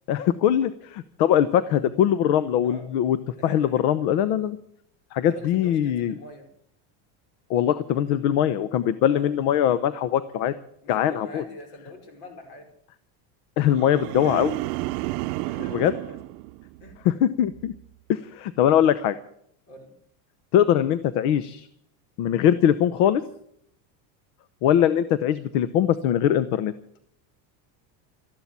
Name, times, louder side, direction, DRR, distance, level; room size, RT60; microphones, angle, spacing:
voice 1, 0.1-3.2 3.4-4.6 5.1-6.1 7.5-10.5 10.9-11.4 13.6-14.5 15.7-15.9 17.0-17.7 18.1-19.2 20.5-21.7 22.2-23.2 24.6-26.7, left 10 dB, 75° left, 15 dB, 1.0 m, -21 dB
voice 2, 3.3-3.9 5.3-6.5 9.1-9.3 10.8-12.7 14.2-14.5 15.5-16.2 16.8-17.0 19.7-19.9, left 1 dB, 60° left, 4 dB, 5.2 m, -43 dB
sound 1, 13.6-17.1 17.5-17.9, right 20 dB, 80° right, 0.6 m, -32 dB
14.0 x 11.5 x 8.4 m, 0.69 s
cardioid pair, 155°, 46 cm